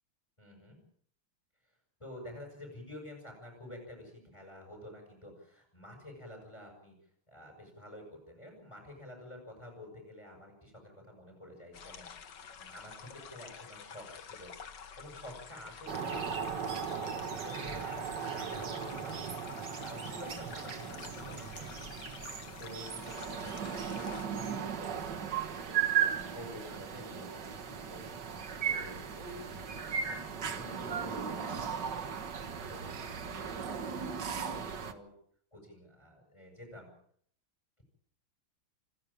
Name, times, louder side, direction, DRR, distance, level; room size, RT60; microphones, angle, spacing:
voice 1, 0.4-0.8 1.6-1.7 2.0-6.9 7.3-12.1 12.6-19.2 19.8-21.8 22.6-25.3 25.6-29.6 29.9-32.1 32.5-33.6 34.0-35.1 35.5-36.9, left 1 dB, 15° left, 1 dB, 7.4 m, -50 dB
sound 1, 11.7-24.3, left 7 dB, 60° left, 2.0 m, -49 dB
sound 2, 15.9-34.9, right 7 dB, 55° right, 2.1 m, -37 dB
28.5 x 12.0 x 8.8 m, 0.64 s
omnidirectional pair, 2.3 m